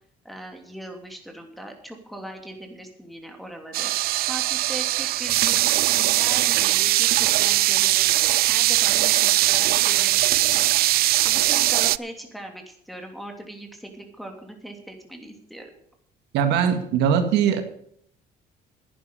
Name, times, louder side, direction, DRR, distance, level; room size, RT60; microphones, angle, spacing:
voice 1, 0.2-3.9 4.3-8.1 8.5-10.7 11.2-15.7, right 1 dB, ahead, 4 dB, 2.9 m, -39 dB
sound 1, 3.7-12.0, right 16 dB, 65° right, 0.4 m, -20 dB
voice 2, 16.3-17.6, right 8 dB, 85° right, 6 dB, 1.9 m, -20 dB
11.0 x 10.0 x 7.0 m, 0.66 s
cardioid pair, 110°, 17 cm